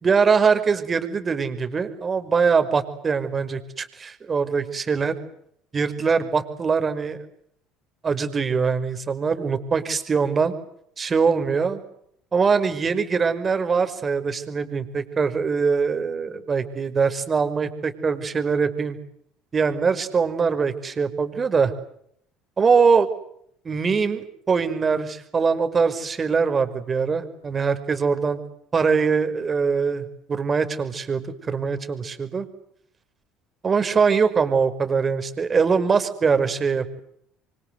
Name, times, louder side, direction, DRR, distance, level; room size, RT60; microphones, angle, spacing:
voice 1, 0.0-5.2 5.7-7.2 8.0-10.5 11.0-11.8 12.3-19.0 19.5-21.7 22.6-23.1 23.7-28.4 28.7-32.5 33.6-37.0, right 5 dB, 35° right, 9 dB, 5.3 m, -22 dB
29.5 x 25.0 x 8.0 m, 0.70 s
hypercardioid pair, 65°, 0 cm